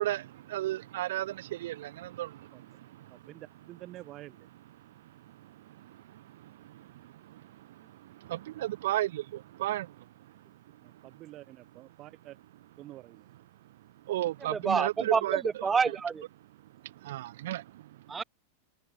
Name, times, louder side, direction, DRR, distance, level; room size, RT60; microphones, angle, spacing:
voice 1, 0.0-2.7 3.0-3.1 5.9-7.4 8.1-10.0 14.1-15.7 16.8-17.8, right 14 dB, 55° right, 1.7 m, -34 dB
voice 2, 3.1-4.5 10.8-12.4 12.8-13.3, right 15 dB, 35° right, 4.9 m, -48 dB
voice 3, 14.5-16.2 18.1-18.2, right 5 dB, 15° right, 2.7 m, -28 dB
figure-of-eight pair, 90°, 0 cm